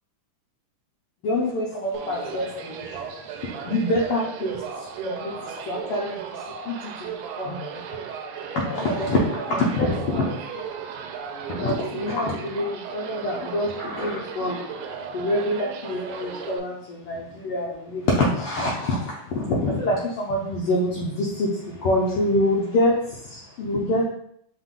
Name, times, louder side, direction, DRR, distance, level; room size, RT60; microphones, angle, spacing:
voice 1, 1.2-7.8 8.5-10.6 11.5-14.9 15.1-24.1, left 1 dB, 80° left, -4 dB, 1.2 m, -26 dB
sound 1, 1.9-16.6, right 7 dB, 85° right, 2.0 m, -36 dB
5.6 x 2.4 x 3.6 m, 0.70 s
omnidirectional pair, 3.4 m